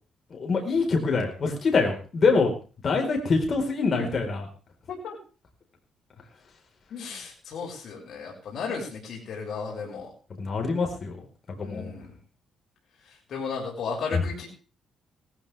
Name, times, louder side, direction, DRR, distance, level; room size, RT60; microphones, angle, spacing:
voice 1, 0.3-2.6 2.8-4.5 10.4-11.2 11.6-11.9 14.1-14.2, left 4 dB, 40° left, 3 dB, 4.5 m, -24 dB
voice 2, 6.9-10.1 11.6-12.1 13.3-14.5, left 5 dB, 60° left, -2 dB, 6.6 m, -34 dB
18.5 x 15.0 x 3.5 m, 0.37 s
cardioid pair, 105°, 0 cm